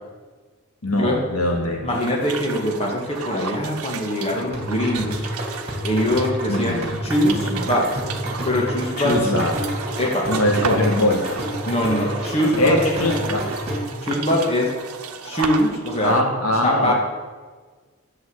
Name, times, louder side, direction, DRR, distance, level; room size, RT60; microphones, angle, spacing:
voice 1, 0.8-1.8 6.5-6.9 9.0-9.5 10.3-11.4 12.5-13.5 16.0-16.9, left 1 dB, 80° left, 2 dB, 2.2 m, -21 dB
voice 2, 1.8-5.3 5.8-7.8 8.4-9.1 10.0-10.3 11.7-12.8 14.0-14.7 15.2-16.2 16.6-16.9, left 1 dB, 25° left, -1 dB, 2.1 m, -22 dB
sound 1, 1.9-16.2, right 5 dB, 80° right, 1.0 m, -33 dB
sound 2, 4.5-14.0, right 1 dB, 25° right, 3.0 m, -29 dB
11.0 x 7.7 x 8.2 m, 1.4 s
head